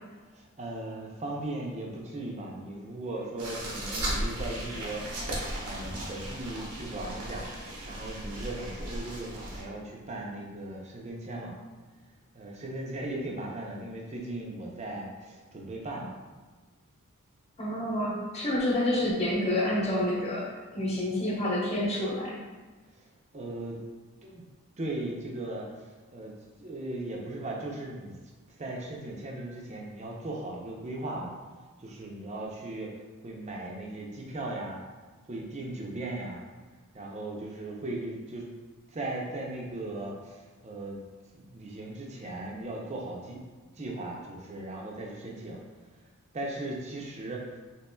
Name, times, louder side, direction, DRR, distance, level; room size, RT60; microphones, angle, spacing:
voice 1, 0.3-5.1 5.6-11.5 12.3-16.1 23.0-23.1 23.3-23.8 24.2-24.4 24.8-28.1 28.6-31.3 31.8-33.0 33.2-34.8 35.3-36.4 36.9-38.5 38.9-41.0 41.3-43.4 43.7-45.6 46.3-47.6, right 2 dB, 30° right, -2 dB, 0.5 m, -38 dB
sound 1, 3.4-9.6, right 1 dB, 90° right, 0.8 m, -36 dB
voice 2, 17.6-20.4 20.7-22.4, left 1 dB, 30° left, -6 dB, 0.9 m, -28 dB
4.2 x 2.9 x 2.2 m, 1.3 s
head